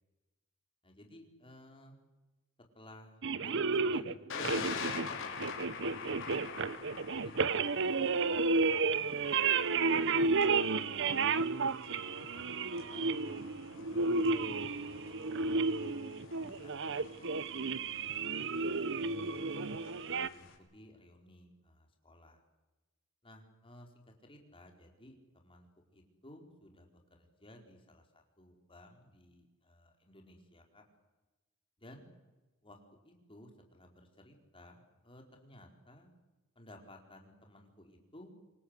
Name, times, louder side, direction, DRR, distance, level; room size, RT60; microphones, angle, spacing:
voice 1, 0.8-2.0 2.7-6.5 7.2-11.6 12.3-13.5 13.8-15.9 16.3-17.6 18.0-18.4 18.6-19.6 20.1-22.4 23.2-30.8 31.8-32.1 32.6-32.8 33.0-36.1 36.6-38.3, left 1 dB, 25° left, 3 dB, 4.5 m, -58 dB
sound 1, 3.2-20.3, right 4 dB, 60° right, 1.0 m, -32 dB
Thunder, 4.3-20.5, left 5 dB, 65° left, 5.3 m, -46 dB
26.5 x 24.5 x 8.3 m, 1.1 s
head